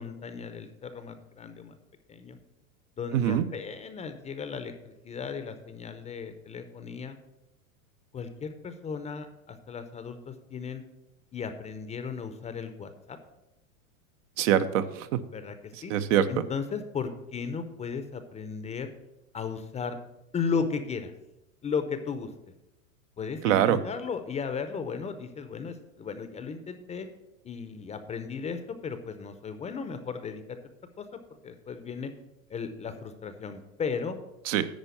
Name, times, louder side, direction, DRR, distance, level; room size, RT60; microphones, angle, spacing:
voice 1, 0.0-1.8 2.1-2.4 3.0-7.2 8.1-10.8 11.3-13.2 15.3-15.6 15.8-15.9 16.3-18.9 19.3-20.0 20.3-21.1 21.6-22.3 23.2-27.1 27.4-30.4 31.0-32.1 32.5-34.2, left 5 dB, 15° left, 9 dB, 0.6 m, -35 dB
voice 2, 3.1-3.5 14.4-15.2 15.9-16.3 23.4-23.8 34.5-34.7, right 10 dB, 65° right, 11 dB, 0.8 m, -24 dB
10.5 x 4.5 x 6.9 m, 0.92 s
supercardioid pair, 130°, 41 cm